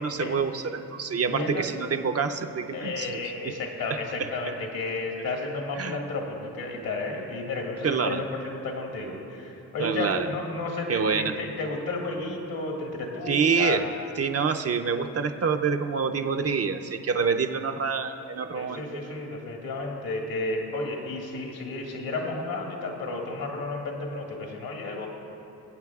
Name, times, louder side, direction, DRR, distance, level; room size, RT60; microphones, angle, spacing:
voice 1, 0.0-3.1 3.4-3.5 3.9-4.3 5.7-6.0 7.8-8.2 9.8-10.3 10.9-11.4 13.3-13.8 14.2-19.0, right 5 dB, 40° right, 6 dB, 0.6 m, -27 dB
voice 2, 1.3-1.7 2.7-13.8 18.5-25.1, left 2 dB, 70° left, 0 dB, 1.8 m, -32 dB
22.5 x 8.8 x 2.4 m, 3.0 s
cardioid pair, 70°, 37 cm